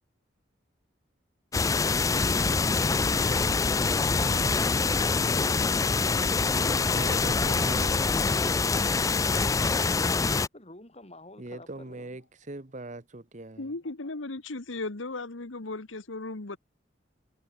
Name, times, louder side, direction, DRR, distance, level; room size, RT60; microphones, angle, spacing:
sound 1, 1.5-10.5, left 4 dB, 15° left, 0.3 m, -25 dB
voice 1, 6.7-8.2 11.4-13.7, right 2 dB, 40° right, 1.1 m, -41 dB
voice 2, 10.5-12.1, left 1 dB, 30° left, 4.9 m, -49 dB
voice 3, 13.6-16.6, left 2 dB, 80° left, 1.4 m, -36 dB
head